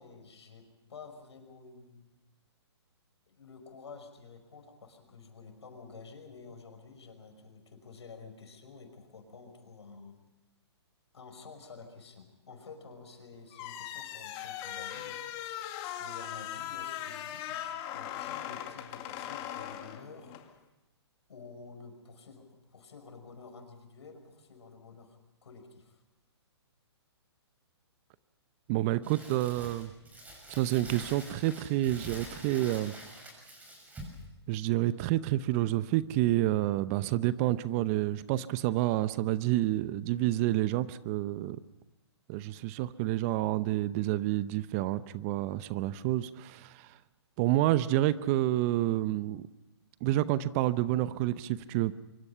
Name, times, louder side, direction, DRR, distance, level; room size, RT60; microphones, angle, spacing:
voice 1, 0.0-2.1 3.3-10.2 11.1-15.2 16.0-20.4 21.3-26.0, left 4 dB, 75° left, 6 dB, 5.5 m, -50 dB
sound 1, 13.5-20.5, left 11 dB, 30° left, 2.2 m, -39 dB
voice 2, 28.7-29.9 30.5-32.9 34.5-41.6 42.3-46.9 47.4-49.4 50.0-51.9, right 15 dB, 30° right, 16 dB, 0.7 m, -29 dB
Crumpling crinkling, 29.0-34.2, right 1 dB, 10° right, 6.6 m, -46 dB
24.5 x 24.5 x 5.7 m, 0.99 s
hypercardioid pair, 135°, 14 cm